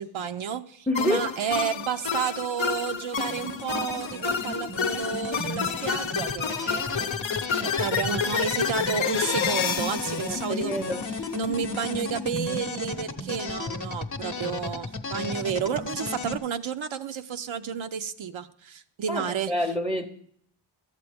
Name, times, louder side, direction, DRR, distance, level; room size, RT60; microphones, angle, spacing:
voice 1, 0.0-7.1 7.6-10.7 11.3-19.5, right 7 dB, 80° right, 0.5 m, -31 dB
voice 2, 0.9-1.3 10.2-11.1 19.1-20.1, left 1 dB, ahead, 0.5 m, -28 dB
sound 1, 1.0-11.3, left 7 dB, 75° left, 0.7 m, -29 dB
sound 2, 3.2-16.4, left 3 dB, 40° left, 0.7 m, -34 dB
12.0 x 8.2 x 3.4 m
wide cardioid pair, 75°, 46 cm